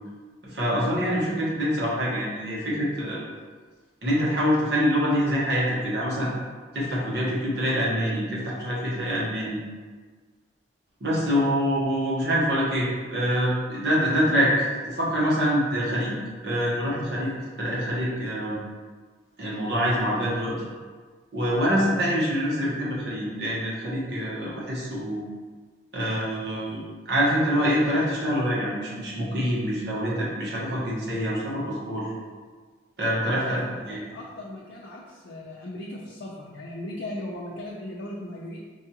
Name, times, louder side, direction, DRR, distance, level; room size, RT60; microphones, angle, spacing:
voice 1, 0.4-3.2 4.0-6.3 6.7-9.6 11.0-16.2 16.4-17.3 17.6-18.6 19.4-20.7 21.3-25.2 25.9-32.1 33.0-34.0, equal, 65° right, -6 dB, 1.1 m, -25 dB
voice 2, 33.2-38.6, left 1 dB, 90° left, -4 dB, 0.5 m, -38 dB
4.6 x 2.3 x 2.9 m, 1.5 s
head